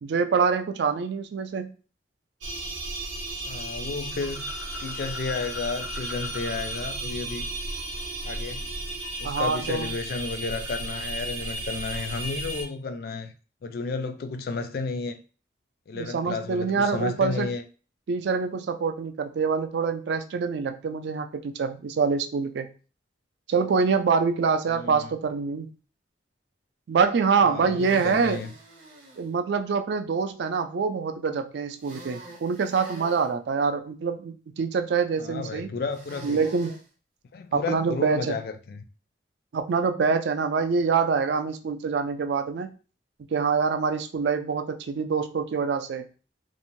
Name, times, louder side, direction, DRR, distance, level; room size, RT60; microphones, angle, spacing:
voice 1, 0.0-1.7 9.2-9.9 15.9-17.5 18.1-22.7 23.5-25.7 26.9-28.4 29.2-35.7 36.2-36.7 37.5-38.4 39.5-42.7 43.3-46.1, right 5 dB, 65° right, 0.3 m, -25 dB
sound 1, 2.4-12.6, right 1 dB, 90° right, 0.7 m, -34 dB
voice 2, 3.4-4.5 4.8-7.5 8.2-8.7 9.2-13.3 13.6-15.2 15.9-17.6 24.7-25.1 27.4-28.5 35.2-36.4 37.3-38.8, left 4 dB, 55° left, 0.3 m, -32 dB
sound 2, 4.2-6.8 7.1-9.4, left 2 dB, 85° left, 0.8 m, -43 dB
sound 3, 27.8-29.3 31.8-33.3 35.9-36.8, right 2 dB, 40° right, 0.7 m, -45 dB
2.6 x 2.1 x 2.9 m
head